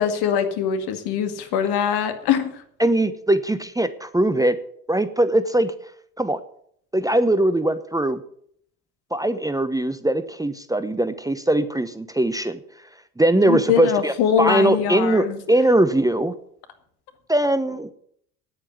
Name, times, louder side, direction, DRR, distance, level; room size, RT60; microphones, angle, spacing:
voice 1, 0.0-2.5 13.4-15.4, left 8 dB, 60° left, 8 dB, 2.1 m, -22 dB
voice 2, 2.8-4.6 4.9-5.7 6.2-6.4 6.9-8.2 9.1-12.6 13.2-16.3 17.3-17.9, right 1 dB, 10° right, 12 dB, 0.9 m, -21 dB
10.0 x 8.7 x 9.4 m, 0.66 s
hypercardioid pair, 60°, 43 cm